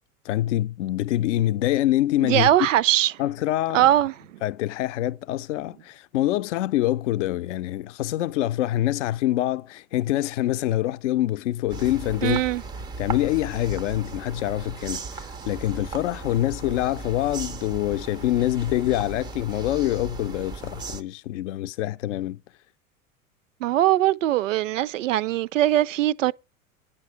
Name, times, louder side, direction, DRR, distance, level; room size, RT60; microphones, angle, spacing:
voice 1, 0.2-2.7 3.2-3.9 4.4-12.4 13.0-22.4, left 14 dB, 55° left, 0.6 m, -25 dB
voice 2, 2.2-3.1 3.7-4.4 12.2-12.6 23.6-26.3, right 14 dB, 60° right, 0.5 m, -21 dB
sound 1, 11.7-21.0, right 4 dB, 10° right, 0.4 m, -37 dB
9.8 x 5.7 x 5.6 m
figure-of-eight pair, 80°, 43 cm